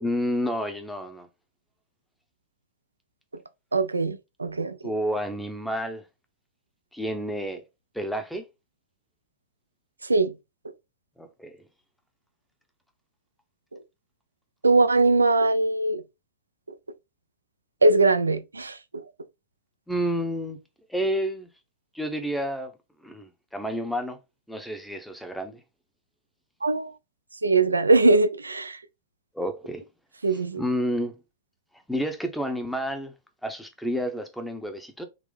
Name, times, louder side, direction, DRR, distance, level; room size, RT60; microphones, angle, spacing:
voice 1, 0.0-1.3 4.8-6.0 6.9-7.6 7.9-8.4 11.2-11.5 19.9-20.6 20.9-21.5 21.9-22.7 23.0-24.2 24.5-25.6 29.3-29.8 30.6-31.1 31.9-33.1 33.4-35.0, equal, ahead, 0.8 m, -30 dB
voice 2, 3.7-4.8 10.0-10.3 14.6-16.0 17.8-19.0 26.6-26.9 27.4-28.8 30.2-30.6, right 3 dB, 90° right, 0.4 m, -21 dB
3.7 x 2.9 x 3.3 m
hypercardioid pair, 100°, 0 cm